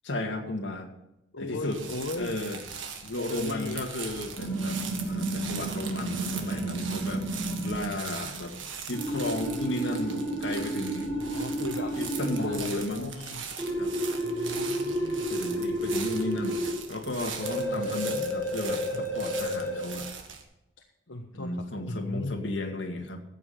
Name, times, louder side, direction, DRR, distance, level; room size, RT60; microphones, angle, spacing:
voice 1, 0.0-0.9 1.4-1.8 2.2-2.6 3.0-4.8 5.1-7.3 7.6-8.6 8.9-11.1 12.0-13.1 13.8-13.9 15.3-20.1 21.3-23.2, left 1 dB, 70° left, 2 dB, 2.1 m, -34 dB
voice 2, 1.3-2.3 3.2-3.8 11.1-11.9 12.4-13.4 14.2-15.3 17.7-17.8 18.9-19.1 21.1-22.5, left 2 dB, 90° left, 1 dB, 1.2 m, -37 dB
sound 1, 1.7-20.4, right 6 dB, 85° right, 1.7 m, -41 dB
sound 2, 4.4-7.8 8.9-12.4 13.6-16.7 17.4-19.8, right 1 dB, 10° left, 5.0 m, -31 dB
14.0 x 8.6 x 5.8 m, 0.87 s
head